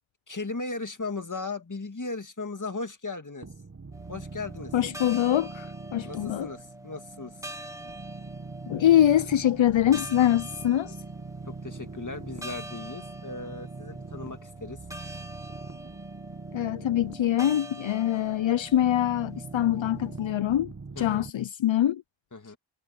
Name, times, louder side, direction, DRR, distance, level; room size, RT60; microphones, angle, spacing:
voice 1, 0.3-3.5 4.1-4.7 6.0-7.4 11.5-14.8 21.0-21.3 22.3-22.6, left 3 dB, 40° left, 2.0 m, -37 dB
sound 1, 3.4-21.3, right 3 dB, 30° right, 1.2 m, -42 dB
sound 2, 3.9-20.3, right 1 dB, 5° right, 2.0 m, -45 dB
voice 2, 4.7-6.5 8.7-11.0 16.5-22.0, left 11 dB, 70° left, 0.5 m, -24 dB
wide cardioid pair, 65°, 48 cm